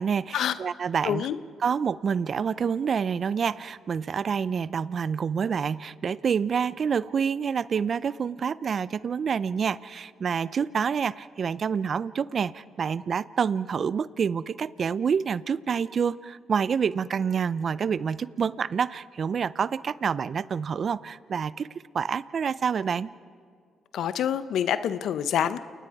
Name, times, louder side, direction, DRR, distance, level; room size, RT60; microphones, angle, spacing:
voice 1, 0.0-1.3 1.6-21.7 21.9-23.1, right 6 dB, 55° right, 18 dB, 0.5 m, -27 dB
voice 2, 1.0-1.4 23.9-25.6, left 9 dB, 75° left, 13 dB, 0.7 m, -26 dB
29.5 x 19.5 x 4.7 m, 2.2 s
supercardioid pair, 60°, 0 cm